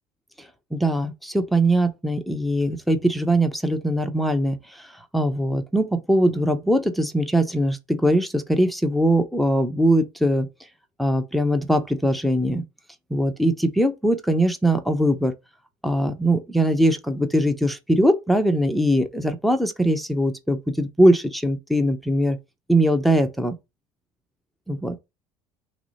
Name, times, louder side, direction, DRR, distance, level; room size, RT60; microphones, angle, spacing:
voice 1, 0.7-10.5 11.0-12.6 13.1-15.3 15.8-22.4 22.7-23.5 24.7-25.0, right 1 dB, ahead, 0.7 m, -21 dB
6.0 x 2.0 x 4.1 m
supercardioid pair, 105°, 11 cm